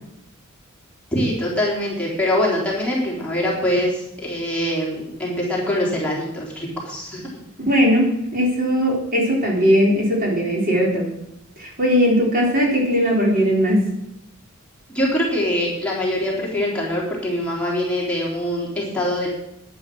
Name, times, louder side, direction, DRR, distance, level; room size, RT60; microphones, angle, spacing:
voice 1, 1.1-7.2 14.9-19.3, left 1 dB, 5° left, -5 dB, 3.7 m, -23 dB
voice 2, 7.7-11.1 11.6-13.8, equal, 45° right, -2 dB, 4.0 m, -19 dB
11.0 x 10.5 x 6.2 m, 0.83 s
head